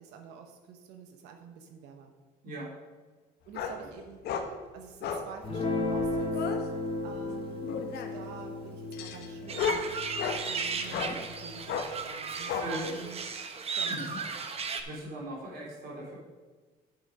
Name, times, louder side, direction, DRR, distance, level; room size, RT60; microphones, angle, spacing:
voice 1, 0.0-2.2 3.5-4.2 4.7-6.3 7.0-9.9 10.4-13.2 13.7-14.3 14.7-14.8, right 7 dB, 90° right, 4 dB, 1.0 m, -47 dB
sound 1, 3.5-3.8 4.2-4.5 5.0-5.3 5.8-6.6 7.6-8.2 8.9-10.4 10.9-11.1 11.7-11.9 12.5-12.7, left 6 dB, 75° left, 1.1 m, -33 dB
Guitar, 5.4-12.0, left 2 dB, 30° left, 2.8 m, -35 dB
sound 2, 9.5-14.8, right 5 dB, 35° right, 0.9 m, -36 dB
voice 2, 10.8-11.2 12.6-12.9 13.9-14.2 14.8-16.2, right 1 dB, 65° right, -3 dB, 3.3 m, -39 dB
7.9 x 6.9 x 5.2 m, 1.3 s
cardioid pair, 110°, 17 cm